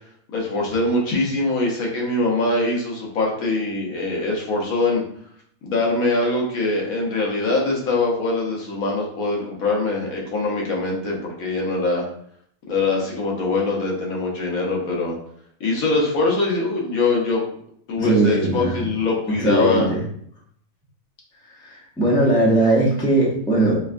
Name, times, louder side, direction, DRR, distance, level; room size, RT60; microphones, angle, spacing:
voice 1, 0.3-5.0 5.6-12.1 12.7-15.2 15.6-17.5 17.9-19.9, left 2 dB, 80° left, -1 dB, 1.3 m, -23 dB
voice 2, 18.0-18.8 19.3-20.0 21.6-23.8, right 2 dB, 5° left, -4 dB, 0.4 m, -19 dB
4.7 x 2.2 x 2.5 m, 0.65 s
omnidirectional pair, 1.5 m